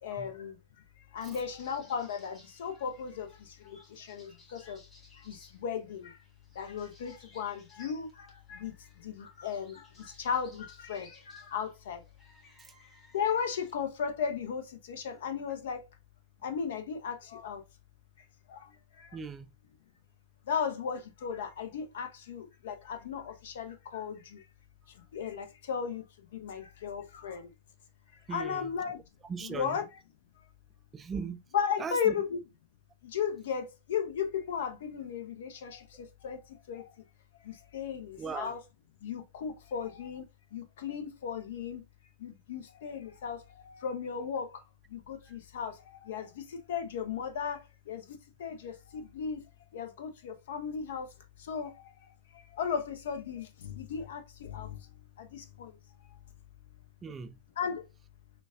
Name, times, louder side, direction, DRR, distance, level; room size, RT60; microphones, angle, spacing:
voice 1, 0.0-4.8 5.2-6.2 6.5-12.0 13.1-15.9 16.4-17.6 18.2-19.2 20.4-24.5 24.9-27.5 28.1-29.0 29.4-29.9 31.5-32.4 33.0-36.9 37.4-38.6 39.0-41.8 42.2-49.4 49.7-55.8 56.1-56.2 57.6-57.9, left 7 dB, 60° left, 0.7 m, -36 dB
sound 1, 1.2-13.7, left 2 dB, 20° left, 1.9 m, -61 dB
voice 2, 19.1-19.5 28.3-28.7 29.3-29.8 30.9-31.4 31.8-32.1 38.2-38.6 45.3-45.4 57.0-57.4, right 5 dB, 20° right, 0.3 m, -39 dB
6.1 x 2.3 x 2.3 m
figure-of-eight pair, 90°, 0 cm